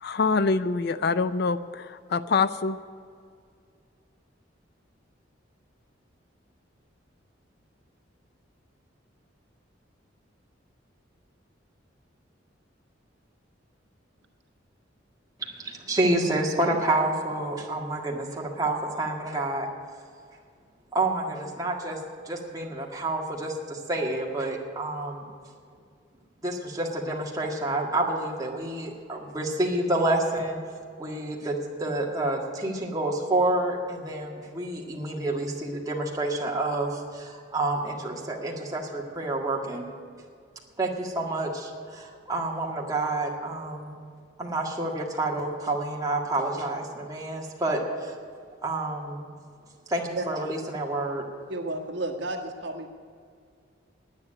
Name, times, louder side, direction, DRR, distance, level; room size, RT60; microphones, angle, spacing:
voice 1, 0.0-2.8, left 4 dB, 55° left, 14 dB, 0.4 m, -25 dB
voice 2, 15.4-19.7 20.9-22.0 22.2-25.2 26.4-30.6 31.0-39.9 40.8-44.0 44.4-48.1 48.6-49.3 49.9-51.3, right 2 dB, 20° right, -1 dB, 1.8 m, -29 dB
voice 3, 51.5-52.9, right 2 dB, 65° right, 3 dB, 1.5 m, -32 dB
9.9 x 9.6 x 9.9 m, 2.2 s
head